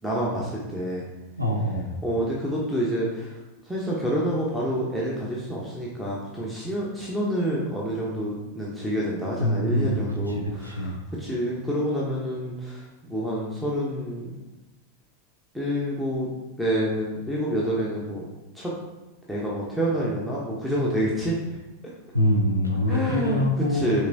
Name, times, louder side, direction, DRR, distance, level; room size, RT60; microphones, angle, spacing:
voice 1, 0.0-1.1 2.0-3.3 3.7-14.3 15.5-16.3 16.6-18.2 18.5-18.7 19.3-21.4 22.9-23.4 23.7-24.1, equal, 5° right, -5 dB, 0.8 m, -28 dB
voice 2, 1.4-1.9 9.4-11.0 22.1-24.1, left 1 dB, 85° right, 1 dB, 0.8 m, -25 dB
6.2 x 3.0 x 2.6 m, 1.1 s
figure-of-eight pair, 90°, 0 cm